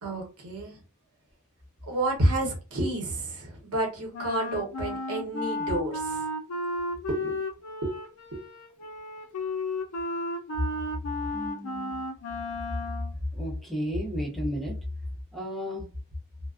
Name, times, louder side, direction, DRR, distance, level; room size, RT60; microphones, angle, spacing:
voice 1, 0.0-0.8 1.8-6.3 7.1-7.4 7.8-8.0 8.3-8.4, right 1 dB, 85° right, -1 dB, 0.9 m, -30 dB
Wind instrument woodwind instrument, 4.1-13.1, left 2 dB, 85° left, 0.4 m, -33 dB
voice 2, 11.3-12.0 13.3-14.8 15.3-15.8, equal, ahead, -2 dB, 0.6 m, -32 dB
2.4 x 2.2 x 2.3 m, 0.32 s
head